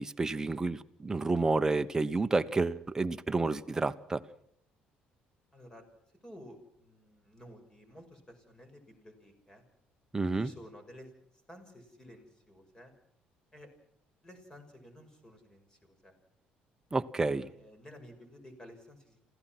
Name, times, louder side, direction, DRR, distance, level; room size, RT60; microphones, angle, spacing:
voice 1, 0.0-4.2 10.1-10.5 16.9-17.5, right 3 dB, 15° right, 9 dB, 1.1 m, -30 dB
voice 2, 5.5-5.8 6.2-9.6 10.3-11.1 11.5-12.9 13.5-13.7 14.2-16.1 17.3-19.2, equal, 20° left, 6 dB, 6.2 m, -53 dB
27.5 x 16.0 x 6.1 m, 0.68 s
cardioid pair, 110°, 3 cm